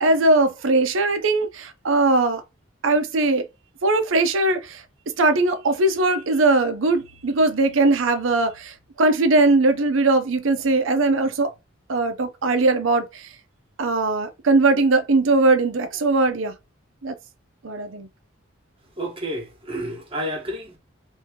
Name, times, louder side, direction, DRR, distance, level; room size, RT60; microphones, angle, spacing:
voice 1, 0.0-2.4 2.8-3.5 3.8-4.8 5.2-11.5 11.9-13.3 13.8-16.5 17.0-17.1 17.6-18.1, right 2 dB, 75° right, 0.6 m, -20 dB
voice 2, 19.0-20.8, equal, 30° right, 1.2 m, -30 dB
2.9 x 2.7 x 3.5 m
head